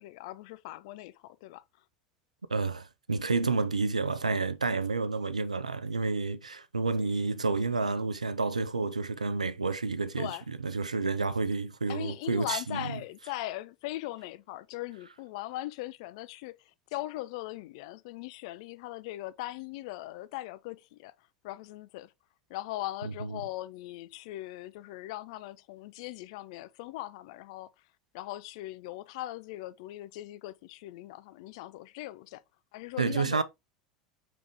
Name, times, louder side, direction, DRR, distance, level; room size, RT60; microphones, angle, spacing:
voice 1, 0.0-1.6 10.2-10.4 11.9-21.1 21.4-22.1 22.5-27.7 28.1-32.4 32.7-33.4, left 16 dB, 60° left, 0.4 m, -40 dB
voice 2, 2.5-10.3 10.6-13.0 23.0-23.4 33.0-33.4, right 3 dB, 85° right, 0.4 m, -30 dB
4.8 x 3.3 x 3.2 m
figure-of-eight pair, 75°, 4 cm